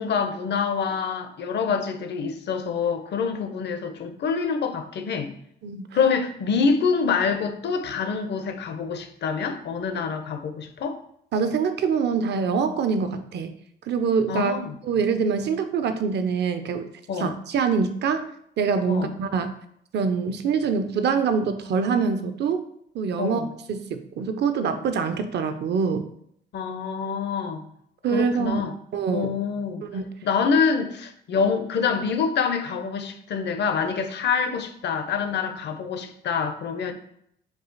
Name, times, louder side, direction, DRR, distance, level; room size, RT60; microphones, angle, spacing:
voice 1, 0.0-5.3 5.9-11.0 14.3-14.7 17.1-17.3 18.9-19.1 23.2-23.5 26.5-27.6 28.1-28.7 29.1-29.8 30.2-36.9, left 5 dB, 60° left, 7 dB, 0.6 m, -26 dB
voice 2, 11.3-13.5 13.9-14.6 14.8-16.9 17.2-18.3 18.6-19.5 19.9-22.6 22.9-23.4 23.7-26.1 28.0-28.6 28.9-29.3 29.8-30.0, right 5 dB, 60° right, 9 dB, 0.5 m, -24 dB
4.7 x 2.4 x 3.9 m, 0.71 s
cardioid pair, 90°, 20 cm